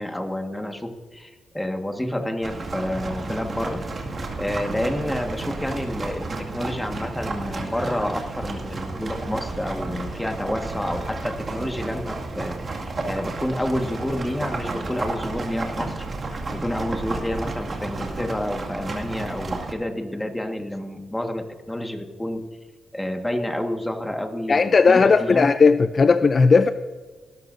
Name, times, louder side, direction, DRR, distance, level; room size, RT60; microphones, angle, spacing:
voice 1, 0.0-3.8 4.4-16.1 16.5-22.4 22.9-25.5, left 1 dB, 10° left, 5 dB, 1.5 m, -29 dB
sound 1, 2.4-19.7, right 3 dB, 40° right, 2.1 m, -32 dB
voice 2, 24.5-26.7, left 4 dB, 45° left, 11 dB, 0.4 m, -16 dB
19.0 x 12.5 x 2.6 m, 1.4 s
cardioid pair, 80°, 0 cm